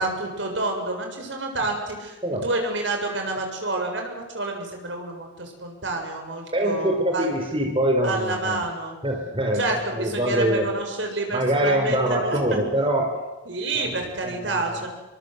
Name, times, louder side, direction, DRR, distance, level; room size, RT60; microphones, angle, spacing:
voice 1, 0.0-7.3 8.0-9.0 9.5-12.4 13.5-14.9, right 2 dB, 65° right, 3 dB, 7.4 m, -29 dB
voice 2, 6.5-8.6 9.0-9.6 9.9-10.7 11.3-13.1 13.7-13.9 14.2-14.9, right 1 dB, 25° right, 2 dB, 4.1 m, -24 dB
28.5 x 24.0 x 8.0 m, 1.1 s
head